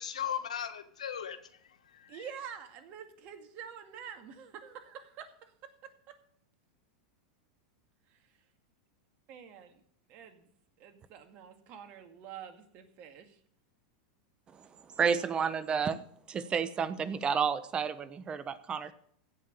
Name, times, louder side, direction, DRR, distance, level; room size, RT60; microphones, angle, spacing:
voice 1, 0.0-2.3, left 9 dB, 85° left, 9 dB, 1.4 m, -38 dB
voice 2, 2.1-5.9 8.1-8.2 9.3-9.8 10.1-10.5 10.8-13.4, right 8 dB, 45° right, 7 dB, 2.1 m, -47 dB
voice 3, 15.0-16.0 16.3-18.9, right 6 dB, 25° right, 15 dB, 1.0 m, -31 dB
16.0 x 5.8 x 6.7 m, 0.65 s
hypercardioid pair, 100°, 4 cm